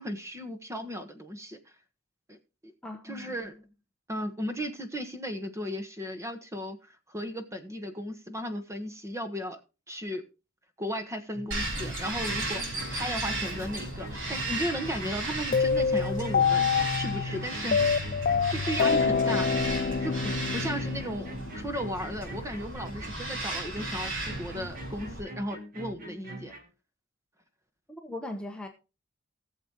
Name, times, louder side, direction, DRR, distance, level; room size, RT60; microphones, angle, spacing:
voice 1, 0.0-1.6 2.3-2.4 2.6-2.7 3.0-3.7 4.1-9.6 9.9-10.2 10.8-16.6 16.9-18.0 18.5-19.5 20.0-26.5, equal, 15° right, 1.3 m, -35 dB
voice 2, 2.8-3.4 27.9-28.7, left 1 dB, 5° left, 0.9 m, -39 dB
sound 1, 11.3-26.7, right 1 dB, 45° right, 2.3 m, -44 dB
Bird vocalization bird call bird song, 11.5-25.2, right 2 dB, 75° right, 4.9 m, -35 dB
sound 2, 15.5-21.7, left 5 dB, 45° left, 0.4 m, -26 dB
19.0 x 7.1 x 3.0 m
head